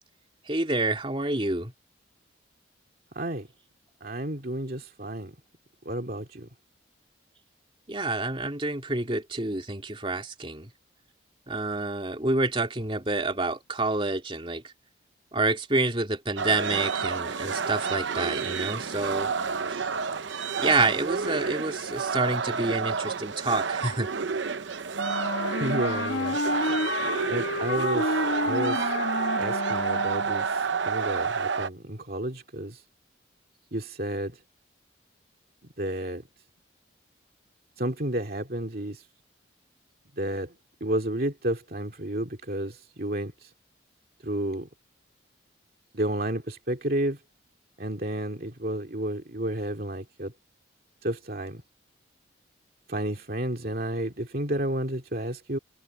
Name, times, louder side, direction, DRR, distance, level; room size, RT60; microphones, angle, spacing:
voice 1, 0.5-1.7 7.9-10.7 11.5-14.7 15.3-19.3 19.7-19.9 20.6-24.1, right 2 dB, 25° right, 3.0 m, -28 dB
voice 2, 3.2-3.5 4.0-5.3 5.9-6.5 25.6-26.4 27.3-28.2 28.4-28.9 29.4-32.8 33.7-34.4 35.8-36.2 37.8-39.0 40.2-40.5 40.8-43.5 44.2-44.7 45.9-47.2 47.8-50.3 51.0-51.6 52.9-55.6, right 1 dB, 50° right, 2.5 m, -31 dB
sound 1, 16.4-31.7, right 5 dB, 75° right, 0.8 m, -29 dB
Wind instrument woodwind instrument, 24.9-30.5, left 2 dB, 80° left, 1.4 m, -30 dB
head